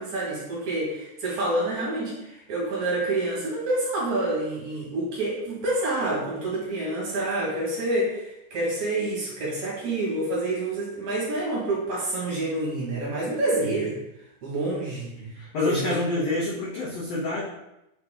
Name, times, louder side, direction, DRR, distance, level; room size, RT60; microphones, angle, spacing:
voice 1, 0.0-14.0 14.4-15.1 15.7-15.9, right 2 dB, 55° right, -5 dB, 3.0 m, -28 dB
voice 2, 15.2-17.4, left 2 dB, 70° left, -5 dB, 1.5 m, -27 dB
7.1 x 4.7 x 3.7 m, 0.89 s
omnidirectional pair, 4.4 m